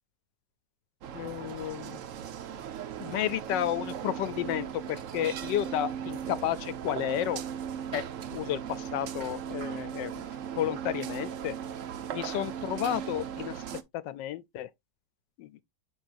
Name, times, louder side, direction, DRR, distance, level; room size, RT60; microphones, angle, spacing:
sound 1, 1.0-13.8, right 8 dB, 75° right, 0.7 m, -37 dB
voice 1, 1.1-2.0 3.0-7.4 7.9-8.0 8.3-10.2 10.6-11.5 12.1-13.6 13.9-14.7 15.4-15.5, left 11 dB, 75° left, 1.1 m, -32 dB
7.1 x 6.0 x 2.5 m
omnidirectional pair, 2.1 m